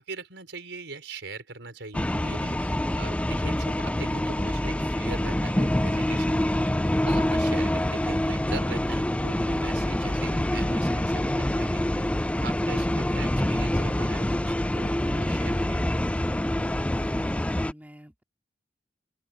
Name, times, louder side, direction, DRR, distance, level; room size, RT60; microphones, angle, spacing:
voice 1, 0.0-6.7 7.0-15.9, right 3 dB, 75° right, 5.1 m, -41 dB
sound 1, 1.9-17.7, left 1 dB, 5° left, 0.4 m, -26 dB
voice 2, 16.9-18.2, equal, 10° right, 2.5 m, -50 dB
open air
head